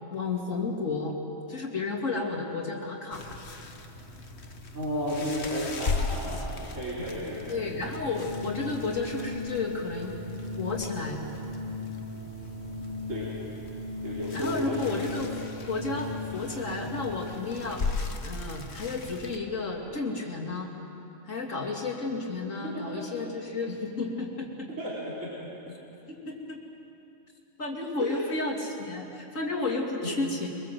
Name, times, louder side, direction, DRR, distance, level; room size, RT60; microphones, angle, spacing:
voice 1, 0.1-1.1 1.5-3.2 7.5-10.2 10.6-11.2 14.3-15.3 15.7-17.8 18.2-20.7 21.2-24.7 26.1-26.6 27.6-30.5, left 3 dB, 90° left, -1 dB, 3.1 m, -32 dB
sound 1, 3.1-19.4, left 3 dB, 60° left, 1.6 m, -38 dB
voice 2, 4.7-7.6 13.1-13.3 14.0-15.0 22.4-23.1 24.8-25.7 28.0-28.6 30.0-30.2, equal, 85° right, -7 dB, 4.3 m, -33 dB
Organ, 7.2-17.5, left 2 dB, 40° right, 1.3 m, -38 dB
23.5 x 23.5 x 7.6 m, 2.9 s
omnidirectional pair, 1.3 m